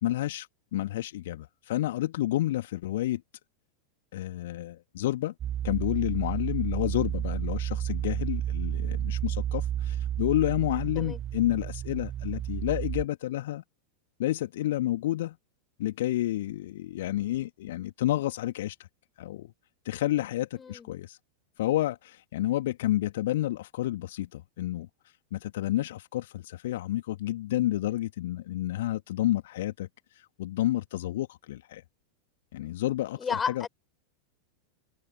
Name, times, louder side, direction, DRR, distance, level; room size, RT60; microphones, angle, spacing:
voice 1, 0.0-3.2 4.1-5.3 5.6-13.6 14.2-15.4 15.8-18.8 19.2-19.5 19.8-21.2 21.6-31.8 32.5-33.7, left 14 dB, 55° left, 2.2 m, -30 dB
sound 1, 5.4-13.1, right 11 dB, 30° right, 1.5 m, -31 dB
voice 2, 20.6-20.9 33.2-33.7, left 6 dB, 20° left, 7.9 m, -32 dB
figure-of-eight pair, 90°, 0 cm